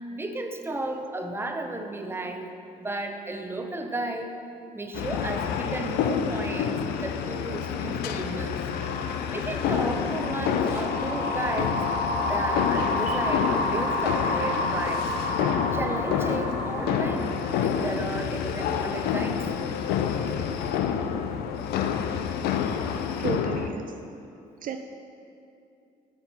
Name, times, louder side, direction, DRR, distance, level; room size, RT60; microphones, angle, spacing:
voice 1, 0.1-2.5 2.8-4.4 4.7-8.6 9.3-11.8 12.2-15.1 15.7-19.4, right 2 dB, 15° right, 4 dB, 0.9 m, -33 dB
sound 1, 4.9-23.7, left 7 dB, 80° left, 0.5 m, -28 dB
sound 2, 8.5-18.0, left 1 dB, 50° left, 1.2 m, -31 dB
voice 2, 23.2-23.9 24.6-24.8, right 7 dB, 60° right, 6 dB, 0.5 m, -33 dB
7.9 x 5.9 x 5.6 m, 2.6 s
supercardioid pair, 65°, 16 cm